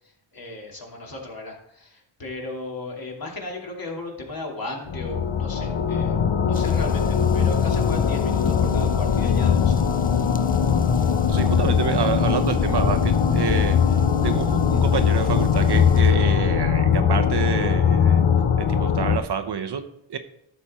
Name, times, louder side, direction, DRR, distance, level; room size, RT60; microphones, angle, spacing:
voice 1, 0.3-9.8, left 2 dB, 45° left, -1 dB, 2.7 m, -36 dB
sound 1, 4.9-19.2, left 7 dB, 65° left, 0.9 m, -21 dB
sound 2, 6.5-16.0, left 5 dB, 20° left, 0.4 m, -29 dB
voice 2, 11.3-13.8 14.2-18.3 18.6-20.2, right 7 dB, 50° right, 8 dB, 0.9 m, -27 dB
12.0 x 6.8 x 4.3 m, 0.76 s
cardioid pair, 80°, 50 cm